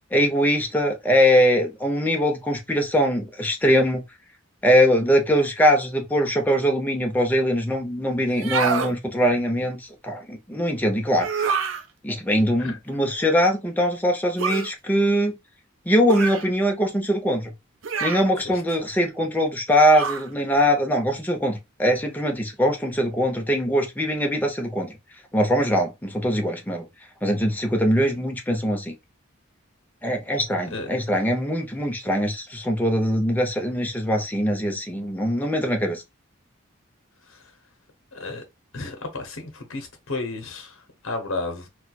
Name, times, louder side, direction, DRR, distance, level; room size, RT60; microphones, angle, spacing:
voice 1, 0.1-4.0 4.6-11.6 12.0-15.3 15.9-17.5 18.0-24.9 25.3-26.9 27.2-28.9 30.0-36.0, equal, 10° left, 0.6 m, -22 dB
sound 1, 8.3-8.9 11.2-11.8 14.4-14.7 16.1-16.5 17.8-18.3 19.9-20.3, right 5 dB, 70° right, 0.5 m, -26 dB
voice 2, 38.1-38.4 38.7-41.7, left 2 dB, 75° left, 0.8 m, -32 dB
4.3 x 2.2 x 2.3 m
head